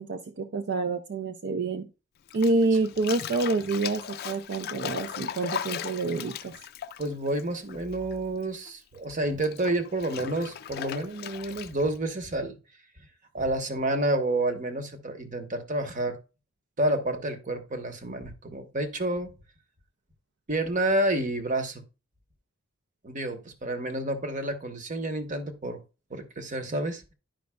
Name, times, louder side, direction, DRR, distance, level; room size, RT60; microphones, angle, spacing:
voice 1, 0.0-1.9 2.3-6.5, right 3 dB, 55° right, 7 dB, 0.4 m, -27 dB
Bathtub (filling or washing), 2.3-8.1 8.4-12.0, left 8 dB, 50° left, 0.4 m, -38 dB
voice 2, 7.0-12.6 13.3-16.2 16.8-19.3 20.5-21.8 23.0-25.8 26.1-27.1, right 1 dB, 35° right, 7 dB, 0.9 m, -29 dB
10.5 x 5.2 x 2.2 m, 0.31 s
head